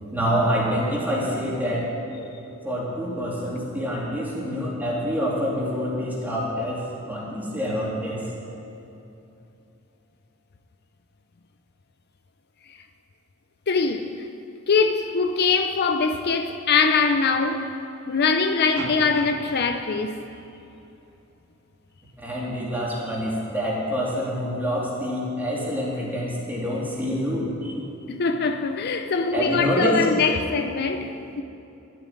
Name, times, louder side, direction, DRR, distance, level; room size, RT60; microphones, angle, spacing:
voice 1, 0.1-1.9 2.6-8.2 22.2-27.7 29.3-30.0, equal, 10° right, 3.0 m, -26 dB
voice 2, 13.7-14.3 14.7-17.8 18.1-20.2 28.1-31.4, left 4 dB, 50° left, 0.5 m, -22 dB
sound 1, 18.7-21.0, right 3 dB, 65° right, 1.0 m, -39 dB
12.5 x 7.6 x 9.6 m
head